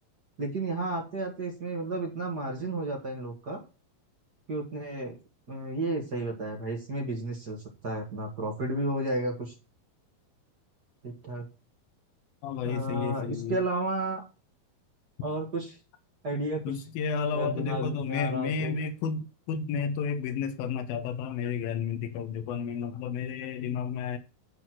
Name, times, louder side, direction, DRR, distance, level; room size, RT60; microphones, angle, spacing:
voice 1, 0.4-3.6 4.5-5.1 5.5-7.6 7.8-9.5 11.0-11.4 12.6-14.2 15.2-15.8 16.2-16.8 17.3-18.8, right 2 dB, 35° right, 1.7 m, -32 dB
voice 2, 12.4-13.6 16.7-24.2, left 6 dB, 80° left, 2.9 m, -31 dB
11.0 x 4.2 x 7.5 m
omnidirectional pair, 4.2 m